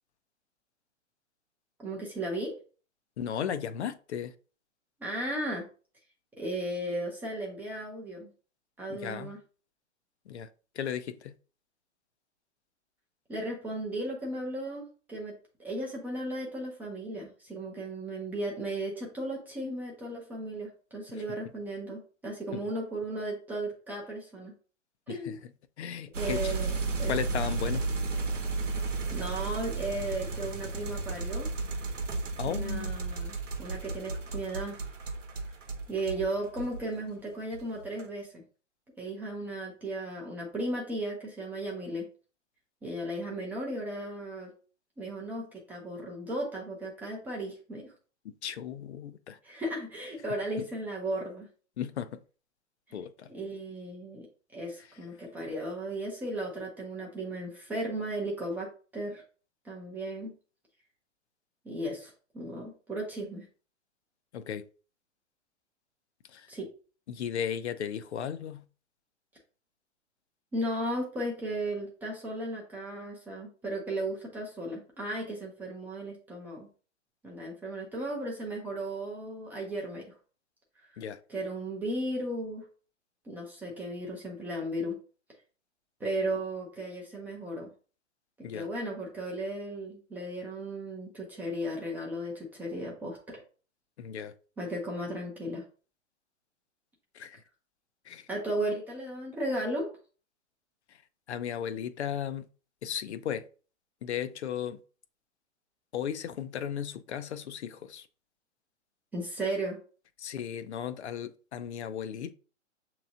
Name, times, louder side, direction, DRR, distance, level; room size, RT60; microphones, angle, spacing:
voice 1, 1.8-2.5 5.0-5.7 6.4-8.3 8.8-9.4 13.3-15.3 15.6-24.5 25.1-25.4 26.1-27.1 29.1-31.5 32.5-34.8 35.9-38.4 39.0-42.1 42.8-44.5 45.0-47.9 49.4-51.5 52.9-53.0 53.3-54.3 54.5-59.2 59.6-60.3 61.6-63.5 66.5-66.7 70.5-76.7 77.2-80.2 80.8-80.9 81.3-82.7 83.2-85.0 86.0-87.7 88.4-93.4 94.6-95.6 98.3-99.9 109.1-109.8, right 1 dB, 5° right, 0.4 m, -35 dB
voice 2, 3.2-4.3 8.9-9.3 10.3-10.5 10.7-11.3 21.1-21.2 22.5-22.6 25.1-25.4 25.8-26.5 27.1-27.9 32.4-32.9 48.2-49.4 51.8-52.2 52.9-53.3 64.3-64.6 66.3-66.5 67.1-68.6 81.0-81.2 88.4-88.7 94.0-94.3 97.1-97.4 98.1-98.3 100.9-101.0 101.3-102.5 102.8-103.5 104.0-104.8 105.9-108.1 110.2-112.3, left 9 dB, 65° left, 0.5 m, -35 dB
sound 1, 26.1-37.1 37.4-38.1, right 3 dB, 80° right, 0.8 m, -33 dB
6.6 x 3.0 x 2.5 m
figure-of-eight pair, 115°, 37 cm